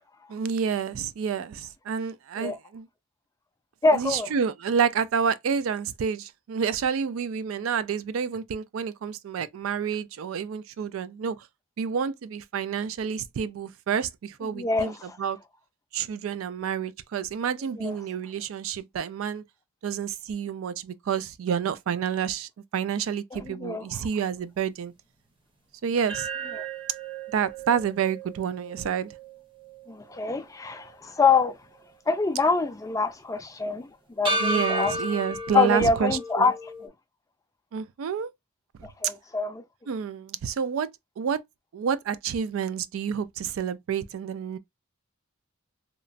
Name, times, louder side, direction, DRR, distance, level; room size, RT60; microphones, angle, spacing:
voice 1, 0.3-2.9 3.9-11.5 11.8-15.4 15.9-19.4 19.8-24.9 25.8-26.3 27.3-29.1 34.4-36.5 37.7-38.3 39.0-39.1 39.9-40.9 41.2-41.4 41.7-44.6, right 7 dB, 75° right, 0.3 m, -29 dB
voice 2, 3.8-4.3 14.5-15.2 17.8-17.9 23.3-23.8 29.9-31.6 32.1-34.9 35.2-36.9 38.8-39.6, left 4 dB, 15° left, 0.3 m, -25 dB
sound 1, 26.1-30.4 30.7-30.8 34.2-36.9, right 1 dB, 25° right, 0.6 m, -33 dB
2.9 x 2.0 x 2.5 m
head